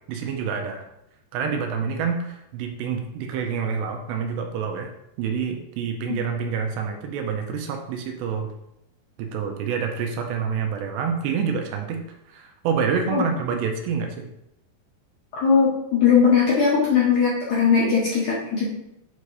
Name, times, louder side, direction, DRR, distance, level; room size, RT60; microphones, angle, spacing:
voice 1, 0.1-0.8 1.3-4.9 5.2-8.5 9.2-12.0 12.3-14.3, right 6 dB, 80° right, 3 dB, 2.8 m, -27 dB
voice 2, 15.3-18.7, left 6 dB, 60° left, -7 dB, 2.1 m, -19 dB
8.4 x 4.0 x 4.9 m, 0.82 s
omnidirectional pair, 5.1 m